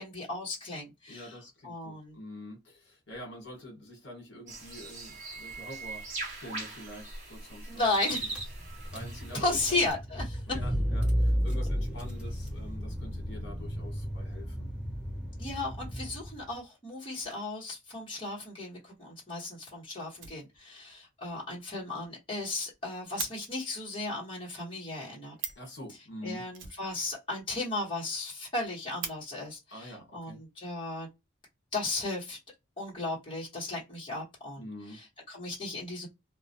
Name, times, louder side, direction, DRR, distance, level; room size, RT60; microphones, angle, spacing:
voice 1, 0.0-1.3 1.6-2.2 7.7-8.4 9.3-10.4 15.4-25.3 26.2-31.1 31.7-32.4 32.8-36.1, left 2 dB, 25° left, 1.0 m, -35 dB
voice 2, 1.1-7.9 8.1-8.3 8.9-9.8 10.5-14.7 25.6-26.4 29.7-30.4 34.6-35.0, left 1 dB, 60° left, 1.2 m, -46 dB
sound 1, 4.5-9.9, right 2 dB, 35° right, 0.9 m, -40 dB
Car / Engine, 8.1-16.5, equal, 5° right, 0.6 m, -33 dB
Fire, 18.9-19.0 19.4-19.5 19.7-19.8 20.1-20.9 21.2-21.3 21.7-21.8 22.0-22.1 22.4-23.3 25.1-25.2 25.3-25.7 26.5-27.4 27.7-27.8 28.1-28.2 28.6-29.1 30.2-30.3 30.9-31.5, right 6 dB, 70° right, 0.7 m, -41 dB
2.2 x 2.0 x 2.6 m
head